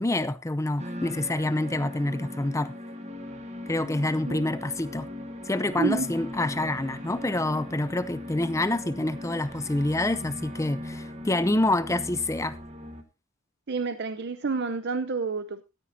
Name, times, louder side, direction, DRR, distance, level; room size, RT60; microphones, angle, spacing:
voice 1, 0.0-2.7 3.7-5.1 5.5-12.6, left 2 dB, 15° left, 0.6 m, -27 dB
sound 1, 0.8-13.0, left 1 dB, 30° right, 1.4 m, -39 dB
voice 2, 5.8-6.1 13.7-15.6, right 4 dB, 50° right, 0.7 m, -29 dB
13.5 x 12.0 x 2.7 m
head